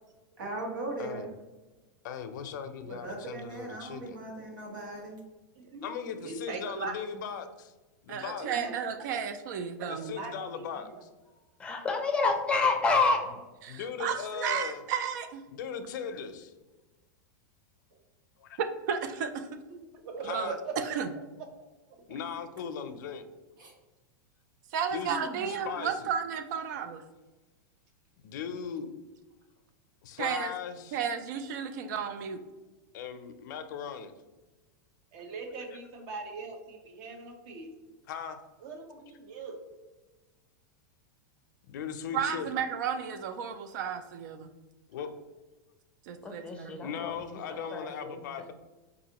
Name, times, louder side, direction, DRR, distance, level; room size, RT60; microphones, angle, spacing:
voice 1, 0.4-1.3 2.8-5.2 11.3-11.4 23.6-23.7 25.0-25.8, right 2 dB, 90° right, -1 dB, 1.4 m, -39 dB
voice 2, 2.0-4.2 5.8-7.7 8.1-8.5 9.9-11.1 13.3-13.4 13.7-14.8 15.5-16.5 18.4-18.6 20.2-20.6 22.1-23.2 24.9-25.2 25.5-26.1 28.2-28.9 30.0-31.0 32.9-34.1 38.1-38.4 41.7-42.6 44.9-45.1 46.8-48.5, left 7 dB, 70° left, 9 dB, 0.5 m, -38 dB
voice 3, 6.2-6.9 8.4-8.7 9.6-10.3 20.0-20.7 35.1-37.7 38.6-39.6, right 4 dB, 50° right, 4 dB, 0.8 m, -40 dB
voice 4, 8.1-10.2 13.6-15.4 18.6-19.5 20.2-20.5 20.8-21.1 24.7-27.0 30.2-30.5 30.9-32.4 42.1-44.5 46.1-46.8, right 7 dB, 65° right, 9 dB, 0.4 m, -33 dB
voice 5, 11.6-13.2 46.2-47.1 47.5-48.2, left 3 dB, 10° left, 3 dB, 0.5 m, -28 dB
4.7 x 2.5 x 2.8 m, 1.2 s
supercardioid pair, 145°, 10 cm